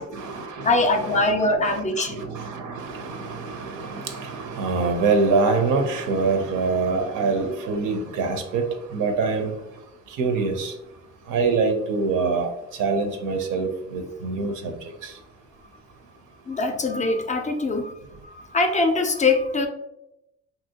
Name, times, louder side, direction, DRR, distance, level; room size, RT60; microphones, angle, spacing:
voice 1, 0.0-8.7 8.9-9.5 10.2-10.7 11.3-12.5 12.8-14.7 15.0-15.1, right 4 dB, 80° right, 5 dB, 0.6 m, -25 dB
voice 2, 0.6-2.3 16.5-17.9 18.3-19.7, left 2 dB, 25° left, 5 dB, 0.4 m, -22 dB
2.8 x 2.7 x 2.7 m, 0.86 s
cardioid pair, 90°, 30 cm